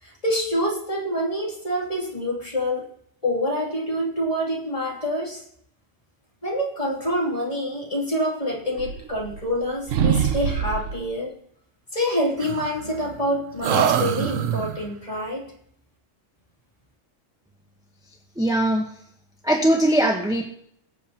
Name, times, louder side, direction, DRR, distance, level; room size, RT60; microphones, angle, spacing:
voice 1, 0.0-2.9 3.2-5.4 6.4-11.3 11.9-15.5, equal, 25° left, -4 dB, 2.9 m, -26 dB
sound 1, 8.7-9.6 9.9-11.1 12.4-13.2 13.6-14.9, right 8 dB, 85° right, 1.1 m, -24 dB
voice 2, 18.4-18.9 19.4-20.4, right 1 dB, 5° right, 0 dB, 1.0 m, -20 dB
22.0 x 7.6 x 2.9 m, 0.68 s
omnidirectional pair, 1.3 m